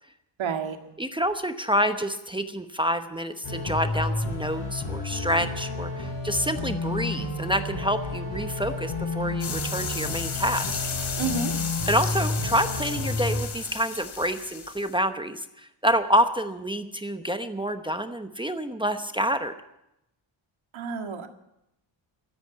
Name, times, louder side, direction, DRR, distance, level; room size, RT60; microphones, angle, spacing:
voice 1, 0.4-0.8 11.2-11.5 20.7-21.3, right 5 dB, 65° right, 5 dB, 1.9 m, -29 dB
voice 2, 1.0-10.8 11.9-19.5, equal, 10° right, 8 dB, 0.9 m, -27 dB
sound 1, 3.4-13.4, left 2 dB, 85° left, 7.6 m, -31 dB
sound 2, 9.4-14.9, left 6 dB, 65° left, 2.8 m, -34 dB
13.5 x 10.5 x 9.2 m, 0.85 s
cardioid pair, 95°, 50 cm